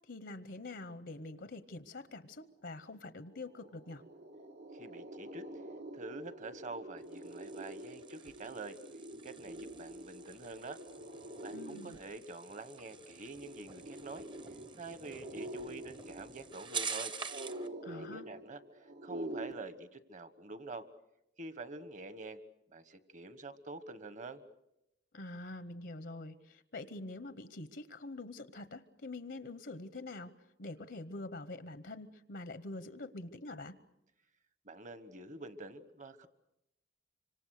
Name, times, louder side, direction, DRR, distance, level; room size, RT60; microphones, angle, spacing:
voice 1, 0.1-4.0 11.5-12.0 17.8-18.3 25.1-30.3 30.6-33.7, left 2 dB, 70° left, 13 dB, 0.9 m, -45 dB
sound 1, 3.0-3.1 3.3-19.5, right 1 dB, 80° right, 1.8 m, -47 dB
voice 2, 4.7-5.5 5.9-8.8 9.2-10.8 11.4-14.3 14.8-17.1 17.9-18.6 19.0-20.9 21.4-22.4 22.7-24.4 34.6-36.3, right 2 dB, 45° right, 12 dB, 1.4 m, -46 dB
sound 2, 7.0-17.7, right 5 dB, 30° right, 0.8 m, -47 dB
25.5 x 25.5 x 6.6 m, 0.83 s
head